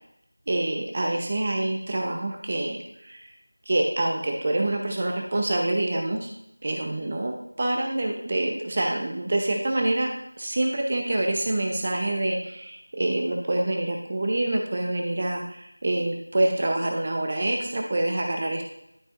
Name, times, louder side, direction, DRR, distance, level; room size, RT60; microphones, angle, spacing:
voice 1, 0.5-3.3 3.7-6.3 6.6-10.1 10.4-18.6, right 1 dB, 20° right, 2 dB, 0.8 m, -26 dB
12.0 x 6.1 x 2.6 m, 0.80 s
figure-of-eight pair, 175°, 0 cm